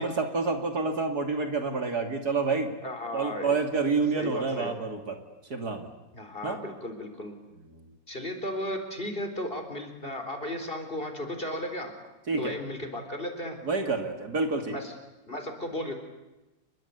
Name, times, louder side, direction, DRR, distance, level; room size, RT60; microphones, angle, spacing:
voice 1, 0.0-2.7 3.1-5.2 5.5-5.9 6.4-6.6 12.3-12.5 13.6-14.8, right 4 dB, 55° right, 5 dB, 3.2 m, -28 dB
voice 2, 2.8-3.5 4.1-4.8 6.1-7.4 8.1-11.9 12.4-13.6 14.7-14.9 15.3-15.9, left 1 dB, 30° left, 6 dB, 4.1 m, -35 dB
29.5 x 22.0 x 8.4 m, 1.0 s
omnidirectional pair, 2.0 m